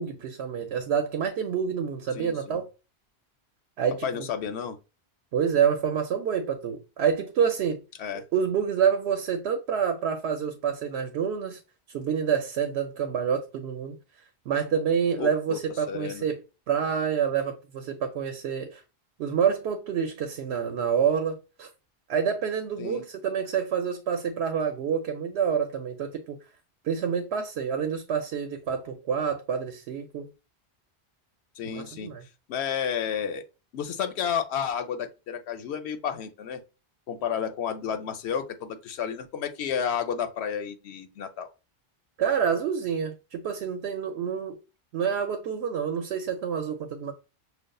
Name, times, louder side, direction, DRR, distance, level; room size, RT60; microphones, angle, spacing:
voice 1, 0.0-2.7 3.8-4.3 5.3-7.8 8.1-11.6 11.9-14.0 14.5-16.4 16.7-18.8 19.2-21.7 22.1-26.4 26.8-30.3 31.7-32.2 42.2-44.6 44.9-47.1, right 7 dB, 85° right, 0.9 m, -27 dB
voice 2, 2.1-2.6 4.0-4.8 8.0-8.2 15.2-15.6 15.9-16.3 22.8-23.0 31.6-32.1 32.5-33.4 33.7-36.6 37.1-41.5, left 7 dB, 90° left, 0.9 m, -31 dB
6.3 x 2.3 x 2.2 m
omnidirectional pair, 1.1 m